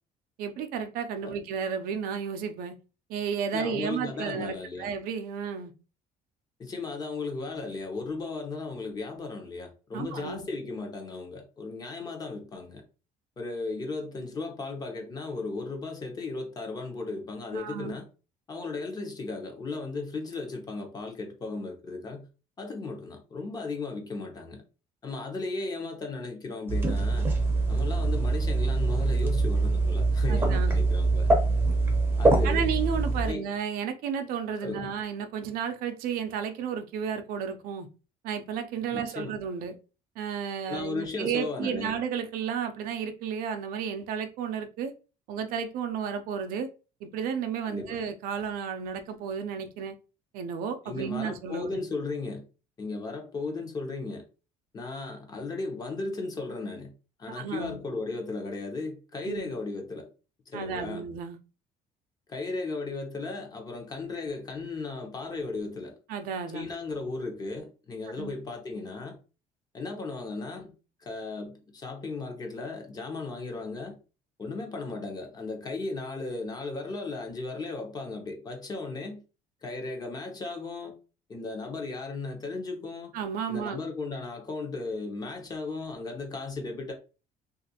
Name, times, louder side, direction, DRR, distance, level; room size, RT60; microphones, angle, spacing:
voice 1, 0.4-2.8 3.1-5.7 9.9-10.5 17.5-17.9 30.3-30.8 32.4-37.9 38.2-39.7 40.2-44.9 45.3-46.7 47.0-50.0 50.3-51.8 57.4-57.8 59.3-59.5 60.5-61.4 66.1-66.7 68.2-68.3 83.1-83.8, right 7 dB, 75° right, 0.5 m, -33 dB
voice 2, 3.5-4.9 6.6-12.8 13.4-18.0 18.5-22.3 22.6-24.6 25.0-27.3 27.7-31.3 32.2-32.7 33.3-33.5 34.6-34.9 38.9-39.4 40.7-41.9 47.7-48.0 50.8-52.4 52.8-54.2 54.7-56.9 57.2-60.1 60.5-61.1 62.3-66.0 66.5-69.2 69.7-70.7 71.0-74.0 74.4-79.2 79.6-81.0 81.3-83.1 83.5-86.9, left 3 dB, 25° left, 0.7 m, -36 dB
sound 1, 26.7-33.3, right 3 dB, 15° right, 0.6 m, -24 dB
3.0 x 2.4 x 2.7 m
cardioid pair, 150°, 15 cm